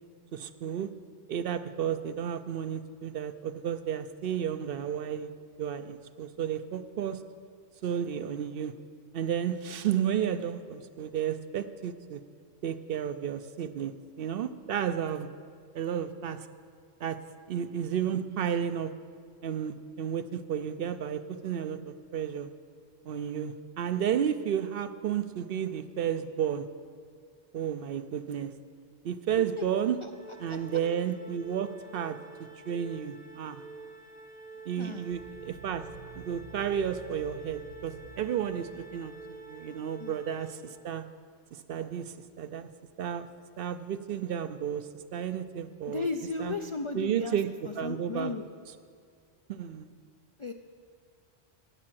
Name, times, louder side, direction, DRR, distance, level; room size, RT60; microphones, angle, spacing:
voice 1, 0.3-0.9 1.3-5.3 5.6-7.2 7.8-8.7 9.1-12.2 12.6-15.3 15.7-16.5 17.0-17.2 17.5-18.9 19.4-22.5 23.1-26.7 27.5-28.5 29.0-30.0 30.4-32.2 32.7-33.6 34.7-35.9 36.1-41.0 41.5-42.7 43.0-43.3 43.6-46.1 46.4-46.5 46.9-48.3 49.5-49.9, right 9 dB, 65° right, 11 dB, 0.7 m, -32 dB
Organ, 30.1-41.0, right 3 dB, 10° left, 0.7 m, -48 dB
voice 2, 34.8-35.1 40.0-40.1 45.9-47.4 47.6-48.5 50.4-50.5, left 4 dB, 50° left, 5 dB, 0.3 m, -35 dB
sound 1, 35.1-39.8, right 3 dB, 75° left, 2.5 m, -51 dB
10.5 x 8.6 x 7.5 m, 2.1 s
omnidirectional pair, 1.1 m